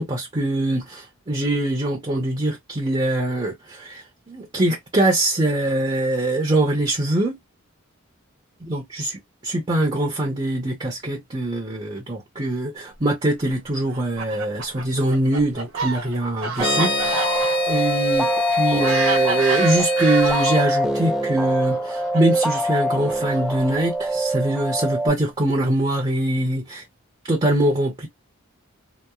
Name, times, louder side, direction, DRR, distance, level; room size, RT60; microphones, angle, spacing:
voice 1, 0.0-7.4 8.7-9.1 9.4-17.4 17.7-26.8 27.2-28.1, right 1 dB, 25° right, 0.7 m, -23 dB
Fowl, 13.9-20.8 21.6-23.7, right 4 dB, 80° right, 1.0 m, -29 dB
sound 1, 16.6-20.7, left 3 dB, 45° left, 0.6 m, -27 dB
sound 2, 16.6-25.1, right 1 dB, ahead, 0.3 m, -23 dB
2.9 x 2.0 x 2.3 m
head